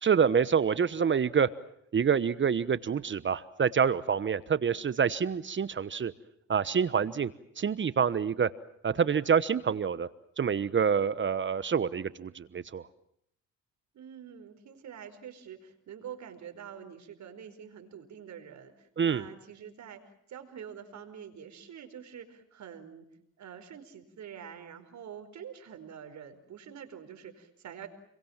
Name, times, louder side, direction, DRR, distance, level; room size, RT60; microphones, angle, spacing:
voice 1, 0.0-1.5 1.9-6.1 6.5-7.3 7.6-8.5 8.8-10.1 10.4-12.8 19.0-19.2, right 7 dB, 40° right, 16 dB, 1.1 m, -27 dB
voice 2, 13.9-23.1 23.4-27.9, right 8 dB, 65° right, 7 dB, 5.0 m, -46 dB
29.5 x 23.0 x 7.5 m, 0.74 s
cardioid pair, 90°, 30 cm